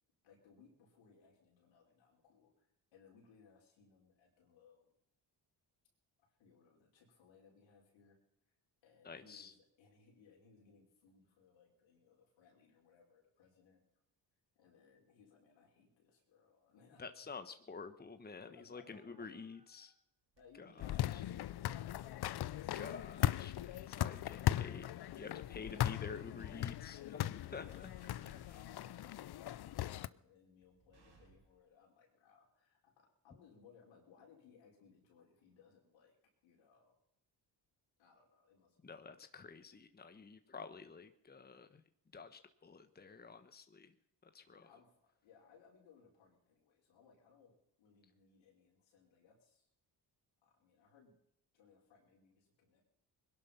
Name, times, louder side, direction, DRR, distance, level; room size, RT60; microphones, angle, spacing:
voice 1, 0.2-4.9 6.2-8.2 8.5-8.6 8.8-13.8 14.6-17.3 18.4-19.4 20.4-22.2 24.1-24.5 28.0-36.2 36.4-37.0 38.0-39.6 44.4-49.7 50.4-51.2 51.5-52.8, left 5 dB, 90° left, -1 dB, 5.3 m, -66 dB
voice 2, 9.0-9.5 17.0-19.9 22.7-27.9 38.8-41.8 42.1-43.9 44.3-44.7, left 5 dB, 20° left, 9 dB, 1.2 m, -50 dB
sound 1, 18.1-19.8 20.3-21.0 21.5-21.6 22.1-22.3 22.7-31.7, right 4 dB, 70° right, 4.8 m, -70 dB
sound 2, 20.8-30.1, left 13 dB, 60° left, 0.6 m, -38 dB
21.0 x 11.5 x 5.9 m, 0.80 s
cardioid pair, 80°, 44 cm